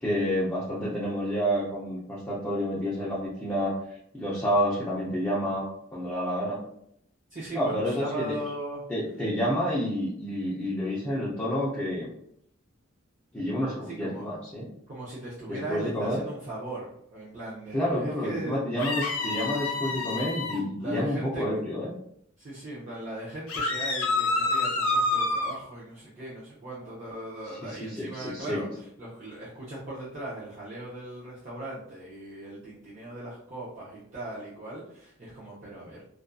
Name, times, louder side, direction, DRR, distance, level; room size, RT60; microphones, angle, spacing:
voice 1, 0.0-6.6 7.5-8.3 8.9-12.1 13.3-14.7 15.5-16.2 17.7-21.9 27.6-28.6, equal, 10° left, -9 dB, 0.5 m, -29 dB
voice 2, 7.3-8.8 13.8-14.2 14.9-18.6 20.8-21.5 22.4-36.0, right 1 dB, 35° right, -9 dB, 0.6 m, -38 dB
sound 1, 18.8-20.6 23.5-25.6, left 2 dB, 80° left, 0.5 m, -27 dB
2.5 x 2.4 x 2.2 m, 0.70 s
head